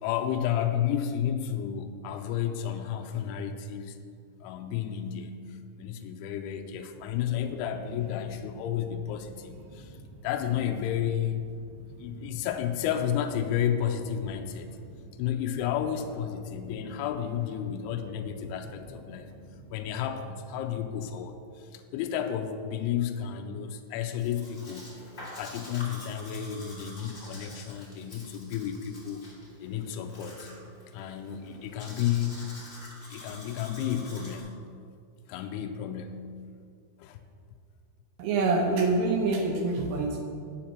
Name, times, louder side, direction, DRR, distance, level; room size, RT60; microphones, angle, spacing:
voice 1, 0.0-4.0 4.4-10.0 10.2-11.5 12.0-14.8 15.2-19.3 19.7-24.9 25.4-29.2 29.6-30.5 30.9-32.5 33.0-34.5 35.3-36.3 37.0-37.2, left 9 dB, 85° left, 5 dB, 2.3 m, -32 dB
sound 1, 6.9-20.1, right 1 dB, 70° right, 2.3 m, -50 dB
Domestic sounds home sounds, 24.2-34.4, equal, 45° left, 0.7 m, -47 dB
voice 2, 38.2-40.2, right 3 dB, 85° right, 1 dB, 1.9 m, -26 dB
8.7 x 6.9 x 5.9 m, 2.3 s
omnidirectional pair, 5.2 m